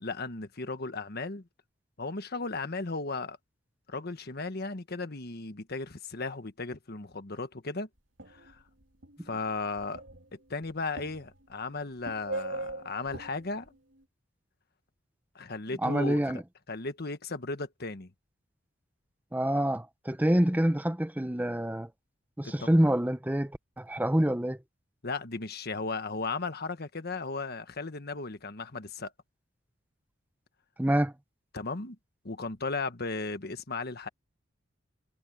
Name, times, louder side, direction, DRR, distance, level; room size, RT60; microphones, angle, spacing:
voice 1, 0.0-1.5 2.0-3.4 3.9-7.9 8.3-8.6 9.2-10.0 10.5-13.7 15.3-16.4 16.7-18.1 22.4-22.7 25.0-29.1 31.5-32.0 32.2-34.1, left 3 dB, 55° left, 1.4 m, -35 dB
sound 1, 8.2-11.5 12.0-13.7, right 2 dB, 75° right, 3.2 m, -40 dB
voice 2, 15.8-16.4 19.3-21.9 22.4-24.6 30.8-31.1, right 1 dB, 10° right, 0.9 m, -26 dB
head